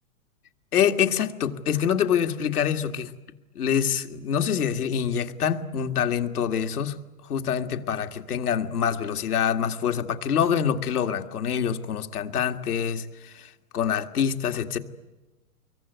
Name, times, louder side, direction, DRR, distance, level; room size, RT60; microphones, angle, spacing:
voice 1, 0.7-3.1 3.6-7.0 7.3-14.8, left 8 dB, 80° left, 2.3 m, -25 dB
25.5 x 23.0 x 9.4 m
hypercardioid pair, 150°, 45 cm